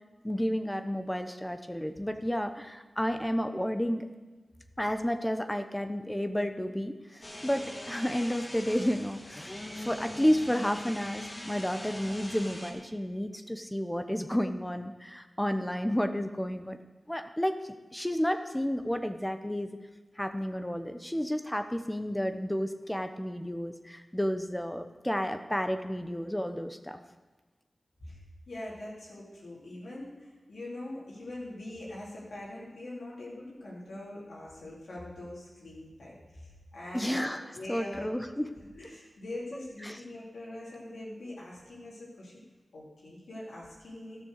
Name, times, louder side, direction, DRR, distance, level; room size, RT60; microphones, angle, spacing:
voice 1, 0.2-4.1 4.8-16.8 17.1-19.8 20.2-27.0 36.9-37.4 37.7-38.5 39.8-40.0, equal, 10° left, 8 dB, 0.9 m, -31 dB
sound 1, 7.2-12.7, left 1 dB, 30° left, 2.0 m, -42 dB
voice 2, 28.5-38.1 38.8-42.4 42.7-44.2, left 1 dB, 90° left, -6 dB, 3.5 m, -43 dB
12.5 x 7.0 x 6.6 m, 1.2 s
cardioid pair, 45°, 0 cm